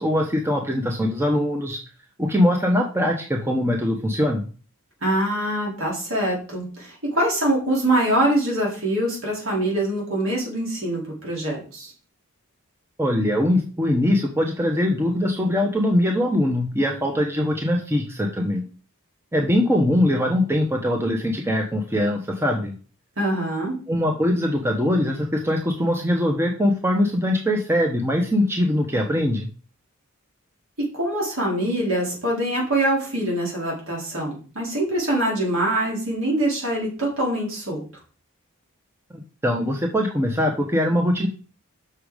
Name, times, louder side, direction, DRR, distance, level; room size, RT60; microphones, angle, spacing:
voice 1, 0.0-1.8 2.2-4.4 13.0-18.6 19.3-22.7 23.9-29.5 39.4-41.3, left 1 dB, 10° right, 2 dB, 0.9 m, -22 dB
voice 2, 5.0-11.9 23.2-23.8 30.9-37.8, right 1 dB, 65° right, -3 dB, 4.1 m, -24 dB
6.7 x 6.3 x 5.0 m, 0.38 s
head